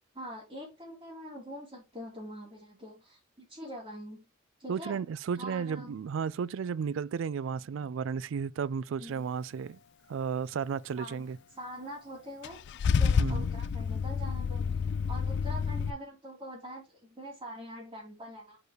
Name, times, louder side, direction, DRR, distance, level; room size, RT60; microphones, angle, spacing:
voice 1, 0.1-4.3 4.6-5.0 5.4-6.0 9.0-9.3 11.0-12.7 13.0-18.6, equal, 25° right, 2.5 m, -44 dB
voice 2, 4.7-9.8 10.1-11.4 13.2-13.5, right 6 dB, 65° right, 0.3 m, -33 dB
Car / Engine starting / Idling, 12.4-15.9, left 6 dB, 55° left, 0.3 m, -29 dB
4.8 x 4.6 x 4.8 m
head